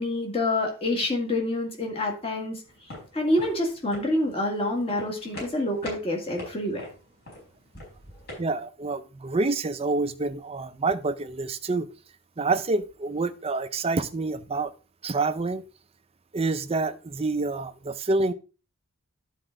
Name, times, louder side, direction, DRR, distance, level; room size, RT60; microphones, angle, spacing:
voice 1, 0.0-2.6 3.1-6.9, left 1 dB, 25° left, 1 dB, 1.8 m, -27 dB
sound 1, 2.7-8.4, left 1 dB, 50° left, 4.8 m, -42 dB
voice 2, 8.4-11.9 12.4-14.7 15.0-15.6 16.3-18.3, right 3 dB, 25° right, 10 dB, 0.5 m, -27 dB
11.0 x 4.5 x 3.8 m, 0.34 s
head